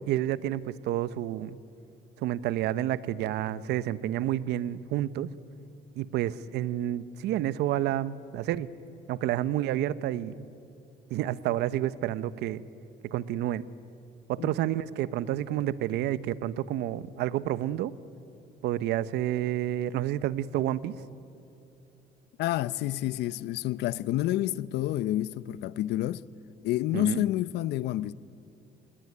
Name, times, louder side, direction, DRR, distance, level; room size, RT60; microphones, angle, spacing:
voice 1, 0.1-1.6 2.2-5.3 6.0-8.7 9.1-10.5 11.1-12.6 13.0-13.7 14.3-17.9 18.6-20.9 26.9-27.2, right 12 dB, 80° right, 0.9 m, -29 dB
voice 2, 22.4-26.2 26.6-28.1, left 14 dB, 80° left, 0.7 m, -29 dB
28.0 x 20.5 x 9.8 m
cardioid pair, 110°, 17 cm